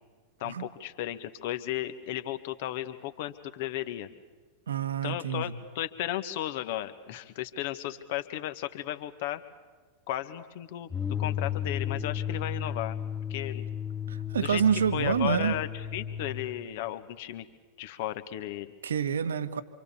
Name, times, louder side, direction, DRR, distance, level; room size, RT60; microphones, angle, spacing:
voice 1, 0.4-4.1 5.0-9.4 10.1-13.0 13.3-13.6 14.4-14.6 14.9-17.5 17.8-18.7, left 13 dB, 50° left, 10 dB, 1.9 m, -35 dB
voice 2, 4.7-5.6 14.1-15.6 18.8-19.6, right 8 dB, 65° right, 13 dB, 1.5 m, -27 dB
sound 1, 10.9-16.5, left 8 dB, 10° left, 2.0 m, -34 dB
27.0 x 27.0 x 7.2 m, 1.4 s
figure-of-eight pair, 90°, 0 cm